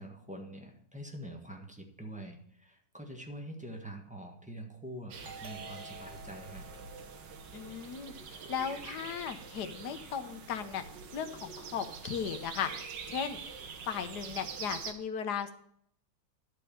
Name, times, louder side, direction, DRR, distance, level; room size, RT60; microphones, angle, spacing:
voice 1, 0.0-6.6, right 1 dB, 5° right, 2 dB, 1.3 m, -45 dB
sound 1, 5.1-14.9, right 6 dB, 85° right, 1.8 m, -45 dB
Doorbell, 5.2-8.6, right 1 dB, 45° right, 1.9 m, -52 dB
voice 2, 7.5-8.1 8.5-10.8 11.1-12.8 13.1-13.4 13.9-15.5, left 7 dB, 70° left, 9 dB, 1.4 m, -36 dB
12.0 x 4.5 x 7.0 m, 0.68 s
omnidirectional pair, 1.9 m